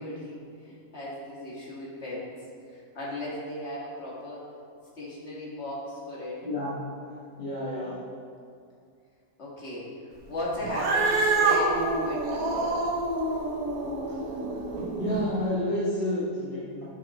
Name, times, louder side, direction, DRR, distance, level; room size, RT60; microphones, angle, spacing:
voice 1, 0.0-2.4 2.7-4.5 5.0-6.5 9.4-9.9 10.3-12.8, left 1 dB, 50° left, -5 dB, 2.1 m, -36 dB
voice 2, 7.4-7.9 15.0-16.8, left 1 dB, 35° left, -11 dB, 1.9 m, -29 dB
Cat, 10.6-15.3, right 3 dB, 80° right, 1.4 m, -27 dB
10.5 x 7.2 x 3.0 m, 2.3 s
omnidirectional pair, 1.5 m